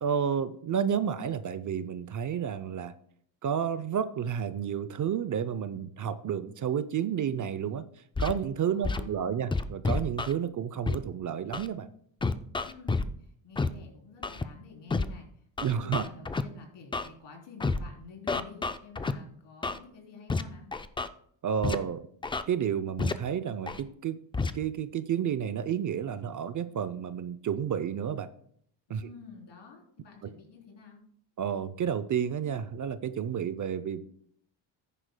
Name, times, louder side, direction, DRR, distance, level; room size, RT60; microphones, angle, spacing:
voice 1, 0.0-2.9 3.4-7.8 8.2-11.9 15.6-16.0 21.4-22.1 22.5-24.2 24.5-28.3 28.9-29.0 30.2-30.3 31.4-34.2, right 8 dB, 40° right, 13 dB, 0.6 m, -31 dB
Scratching (performance technique), 8.2-8.3 8.8-9.0 9.5-10.3 10.9-11.0 11.5-11.7 12.2-13.1 13.6-13.7 14.2-14.4 14.9-15.1 15.6-16.4 16.9-17.1 17.6-17.8 18.3-19.1 19.6-19.8 20.3-20.4 20.7-21.1 21.6-21.8 22.2-22.4 23.0-23.1 23.7-23.8 24.3-24.5, left 3 dB, 10° left, 0.3 m, -29 dB
voice 2, 8.7-9.4 12.6-15.3 15.6-20.7 28.9-31.0, left 4 dB, 65° left, 0 dB, 3.7 m, -49 dB
14.5 x 10.0 x 2.2 m, 0.64 s
cardioid pair, 110°, 46 cm